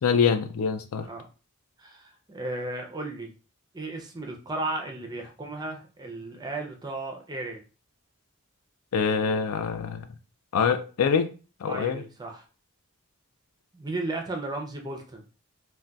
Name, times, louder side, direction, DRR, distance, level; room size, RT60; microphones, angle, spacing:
voice 1, 0.0-1.1 8.9-10.1 10.5-11.3 11.6-12.0, left 6 dB, 80° left, 8 dB, 0.4 m, -24 dB
voice 2, 1.8-3.3 3.7-7.6 11.7-12.4 13.7-15.2, right 2 dB, 20° right, 3 dB, 0.5 m, -35 dB
3.8 x 2.2 x 2.2 m, 0.34 s
head